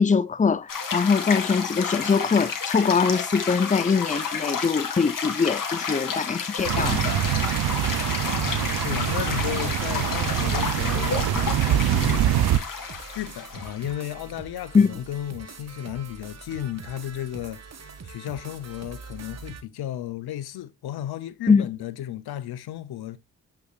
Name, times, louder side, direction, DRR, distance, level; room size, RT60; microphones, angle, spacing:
voice 1, 0.0-7.1 14.7-14.9 21.5-21.7, left 5 dB, 20° left, 0.6 m, -22 dB
sound 1, 0.7-13.9, left 6 dB, 60° left, 2.3 m, -31 dB
sound 2, 6.6-12.6, right 12 dB, 75° right, 0.7 m, -24 dB
voice 2, 8.2-12.4 13.1-17.6 18.0-23.2, left 12 dB, 80° left, 0.9 m, -34 dB
sound 3, 10.4-19.6, right 5 dB, 45° right, 1.5 m, -43 dB
7.9 x 5.9 x 2.4 m
supercardioid pair, 55°, 38 cm